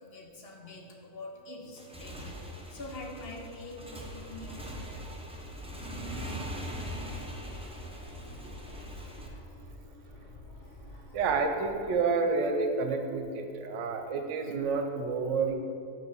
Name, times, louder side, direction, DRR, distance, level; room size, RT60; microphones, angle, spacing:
voice 1, 0.0-2.4 2.7-4.6, left 2 dB, 50° left, 2 dB, 0.9 m, -44 dB
Motorcycle / Engine, 1.7-9.3, equal, 10° right, 0.3 m, -41 dB
sound 1, 4.1-11.9, left 1 dB, 85° left, 1.5 m, -49 dB
voice 2, 11.1-15.5, right 4 dB, 70° right, 5 dB, 1.0 m, -29 dB
5.4 x 5.4 x 5.4 m, 2.4 s
omnidirectional pair, 1.4 m